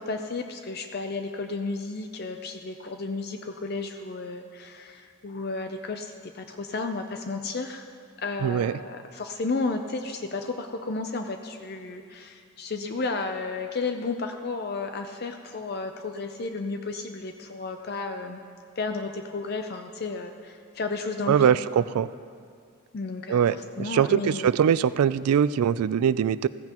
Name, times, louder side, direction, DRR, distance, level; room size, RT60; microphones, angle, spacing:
voice 1, 0.0-7.9 8.2-18.4 18.8-21.5 21.8-21.9 22.9-24.5, left 3 dB, 45° left, 5 dB, 0.5 m, -33 dB
voice 2, 8.4-8.7 21.3-22.1 23.3-26.5, right 8 dB, 90° right, 18 dB, 0.3 m, -22 dB
15.5 x 15.0 x 3.0 m, 2.2 s
head